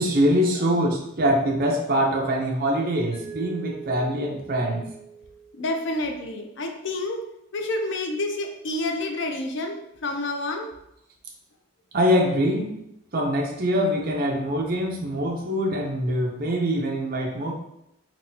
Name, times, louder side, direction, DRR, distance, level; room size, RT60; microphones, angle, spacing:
voice 1, 0.0-4.9 11.9-12.8 13.1-17.5, equal, 45° right, 0 dB, 0.5 m, -24 dB
Mallet percussion, 3.1-6.0, right 6 dB, 30° left, 1.0 m, -41 dB
voice 2, 5.6-7.2 7.5-10.7, left 2 dB, 55° left, 3 dB, 0.4 m, -29 dB
4.0 x 2.2 x 2.7 m, 0.82 s
head